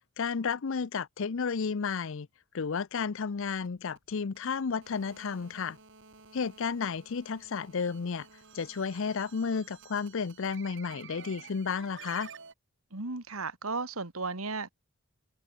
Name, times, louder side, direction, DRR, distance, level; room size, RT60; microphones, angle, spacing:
voice 1, 0.2-2.3 2.5-5.8 6.3-8.3 8.5-12.3, left 5 dB, 65° left, 0.6 m, -32 dB
sound 1, 3.0-12.5, right 6 dB, 60° right, 7.1 m, -52 dB
voice 2, 12.9-14.8, right 3 dB, 80° right, 2.5 m, -35 dB
head